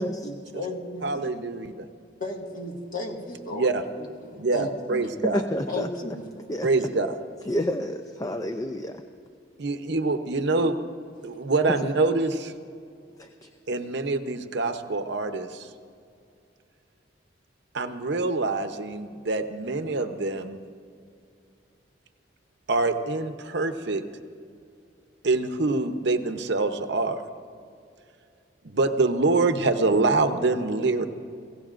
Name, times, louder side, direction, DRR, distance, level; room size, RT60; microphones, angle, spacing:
voice 1, 0.0-1.3 2.2-3.7 4.2-5.0 5.7-6.2, left 2 dB, 50° left, 0 dB, 1.9 m, -35 dB
voice 2, 1.0-1.9 3.5-3.8 4.3-5.4 6.6-7.2 9.6-10.8 11.2-12.5 13.7-15.7 17.7-20.6 22.7-24.0 25.2-27.2 28.6-31.1, right 3 dB, 70° right, 8 dB, 0.8 m, -25 dB
voice 3, 5.2-5.9 6.5-6.7 7.5-9.0 13.2-13.5, left 1 dB, 20° left, 6 dB, 0.5 m, -29 dB
25.5 x 16.0 x 2.5 m, 2.4 s
head